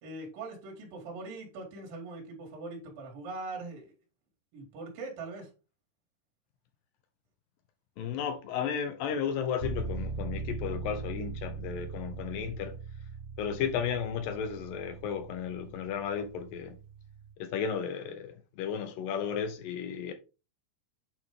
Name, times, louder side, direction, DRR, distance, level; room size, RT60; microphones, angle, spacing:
voice 1, 0.0-3.9 4.5-5.5, right 3 dB, 65° right, 3.7 m, -41 dB
voice 2, 8.0-12.8 13.4-16.8 17.4-20.1, left 7 dB, 75° left, 2.3 m, -34 dB
sound 1, 9.6-17.3, right 4 dB, 90° right, 1.6 m, -40 dB
8.8 x 4.1 x 3.6 m
omnidirectional pair, 4.4 m